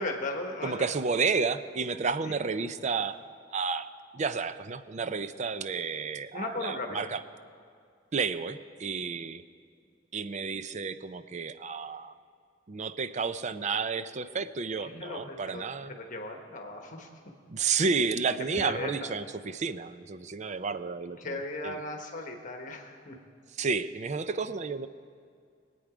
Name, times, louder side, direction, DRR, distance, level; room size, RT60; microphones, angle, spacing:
voice 1, 0.0-0.8 2.2-2.3 6.3-7.1 14.8-15.6 15.9-17.1 18.6-19.1 21.2-23.2, left 2 dB, 45° left, 3 dB, 1.2 m, -37 dB
voice 2, 0.6-3.2 3.5-3.9 4.1-7.2 8.1-9.4 10.1-12.1 12.7-16.0 17.5-21.8 23.6-24.9, right 5 dB, 40° right, 12 dB, 0.5 m, -31 dB
22.5 x 8.7 x 5.0 m, 2.2 s
head